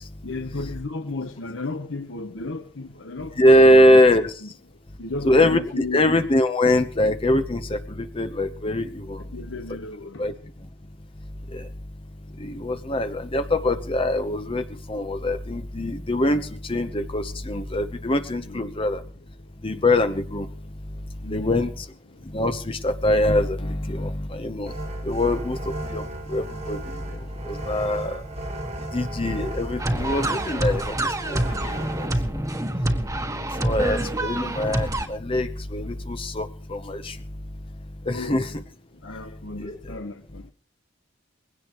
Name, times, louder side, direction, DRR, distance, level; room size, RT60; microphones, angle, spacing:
voice 1, 0.2-4.1 4.4-4.5 5.0-6.2 9.3-10.3 18.4-18.7 21.2-21.5 38.1-38.5 39.0-40.4, left 2 dB, 80° left, 1.1 m, -34 dB
voice 2, 3.4-4.3 5.2-9.2 10.2-10.3 11.5-11.7 12.3-19.0 19.6-20.5 21.3-21.9 22.2-28.2 28.9-32.1 33.2-37.2 38.0-38.5 39.6-39.9, left 1 dB, 30° left, 0.9 m, -23 dB
sound 1, 24.7-32.1, right 1 dB, 35° right, 1.7 m, -36 dB
sound 2, 29.8-35.1, right 1 dB, 20° right, 1.5 m, -26 dB
21.5 x 17.0 x 3.1 m
head